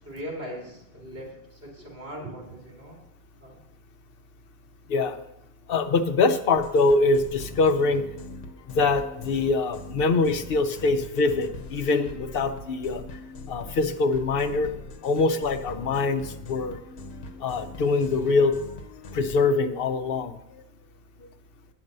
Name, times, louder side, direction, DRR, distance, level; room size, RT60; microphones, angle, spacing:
voice 1, 0.0-3.0 3.4-3.6, equal, 70° right, -3 dB, 2.9 m, -39 dB
voice 2, 4.9-5.2 5.7-8.0 8.7-13.0 13.5-14.7 15.0-16.8 17.4-18.5 19.1-20.3, left 3 dB, 65° left, 8 dB, 0.9 m, -23 dB
sound 1, 6.5-19.4, left 3 dB, 85° left, 1.1 m, -42 dB
8.8 x 6.0 x 6.6 m, 0.82 s
omnidirectional pair, 1.1 m